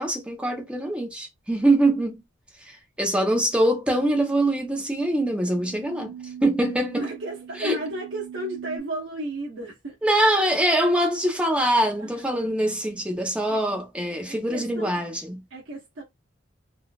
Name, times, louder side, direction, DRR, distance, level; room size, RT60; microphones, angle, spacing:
voice 1, 0.0-2.2 2.6-6.1 6.4-7.0 7.6-7.8 10.0-15.4, right 1 dB, 5° right, 0.7 m, -23 dB
sound 1, 4.4-8.8, right 8 dB, 90° left, 1.0 m, -42 dB
voice 2, 6.9-10.0 12.0-12.4 13.5-13.6 14.2-15.0 15.5-16.0, right 1 dB, 80° right, 0.9 m, -34 dB
3.8 x 2.4 x 2.3 m
head